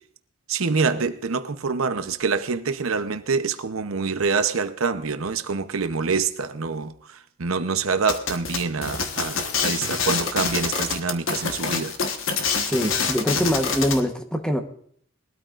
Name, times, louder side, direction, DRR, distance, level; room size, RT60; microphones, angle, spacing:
voice 1, 0.5-6.9 7.4-12.0, right 4 dB, 85° right, 0.8 m, -26 dB
sound 1, 8.1-14.0, left 5 dB, 70° left, 1.3 m, -26 dB
voice 2, 12.6-14.6, equal, 5° left, 1.1 m, -23 dB
21.5 x 13.0 x 2.5 m
head